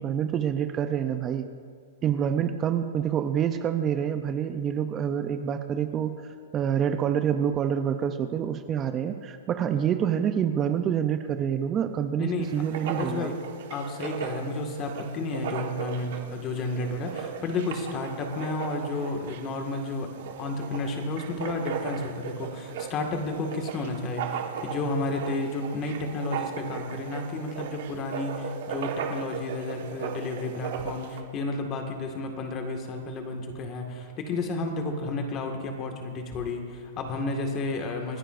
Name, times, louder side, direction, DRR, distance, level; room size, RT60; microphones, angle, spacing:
voice 1, 0.0-1.5 2.0-6.1 6.5-13.3, right 8 dB, 25° right, 9 dB, 0.6 m, -27 dB
voice 2, 12.2-12.5 12.9-13.3 13.7-38.2, left 2 dB, 30° left, 3 dB, 1.8 m, -32 dB
Writing, 12.4-31.2, right 7 dB, 60° right, 1.4 m, -37 dB
28.0 x 10.0 x 2.6 m, 2.1 s
hypercardioid pair, 135°, 0 cm